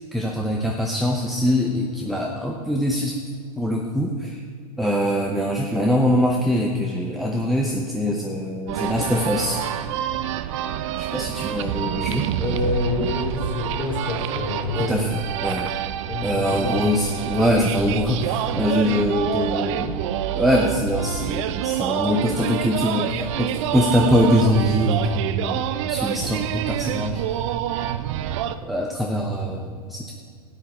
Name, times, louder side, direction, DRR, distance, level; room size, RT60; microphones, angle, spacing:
voice 1, 0.1-3.2 3.6-4.4 4.8-9.6 10.9-12.2 14.8-15.7 16.2-27.2 28.6-30.1, equal, ahead, 0 dB, 0.8 m, -23 dB
sound 1, 8.7-28.6, right 11 dB, 50° right, 0.6 m, -27 dB
voice 2, 12.4-15.1 16.1-16.9, left 3 dB, 25° left, -1 dB, 3.3 m, -27 dB
13.0 x 9.6 x 4.3 m, 2.2 s
hypercardioid pair, 120°, 19 cm